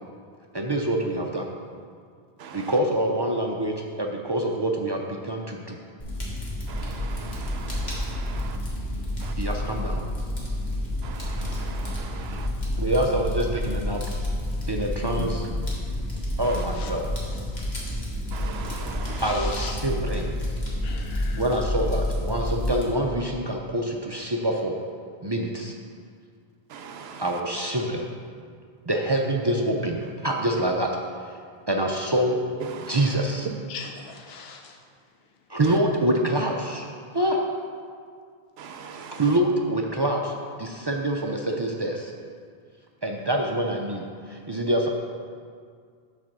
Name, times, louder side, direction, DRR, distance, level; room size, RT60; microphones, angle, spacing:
voice 1, 0.5-1.5 2.5-5.8 9.4-10.0 12.8-14.0 14.7-15.5 16.4-17.1 19.2-20.4 21.4-24.8 25.2-25.7 27.2-28.1 28.9-30.9 31.3-31.4 31.7-32.4 32.8-33.5 35.5-36.8 37.1-37.4 39.1-42.1 43.0-44.9, right 1 dB, 40° right, 0.4 m, -26 dB
Fire, 6.0-22.8, left 1 dB, 45° left, 1.5 m, -29 dB
voice 2, 6.7-8.5 9.2-9.3 11.0-12.2 18.3-19.2 26.7-27.2 32.8-32.9 38.6-39.2, right 6 dB, 80° right, 0.9 m, -40 dB
voice 3, 19.1-19.8 20.8-21.4 33.7-34.7, left 6 dB, 80° left, 0.9 m, -38 dB
7.5 x 4.2 x 6.0 m
omnidirectional pair, 1.0 m